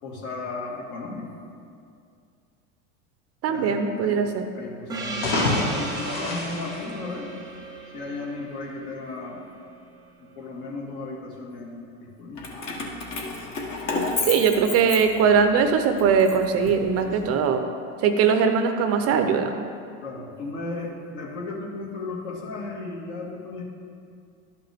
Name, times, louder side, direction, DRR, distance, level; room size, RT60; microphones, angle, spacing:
voice 1, 0.0-1.2 3.5-4.3 4.6-7.3 7.9-9.5 10.3-12.5 17.0-17.4 20.0-23.6, left 3 dB, 60° left, -2 dB, 2.0 m, -35 dB
voice 2, 3.4-4.4 14.3-17.6 18.0-19.5, right 6 dB, 40° right, 6 dB, 0.6 m, -21 dB
Gong, 4.9-10.0, right 2 dB, 10° right, 0.8 m, -36 dB
sound 1, 5.1-7.6, left 2 dB, 85° left, 1.9 m, -28 dB
Keys jangling, 12.4-15.5 16.0-17.3, left 3 dB, 45° left, 1.3 m, -31 dB
11.5 x 5.8 x 3.5 m, 2.3 s
supercardioid pair, 125°, 39 cm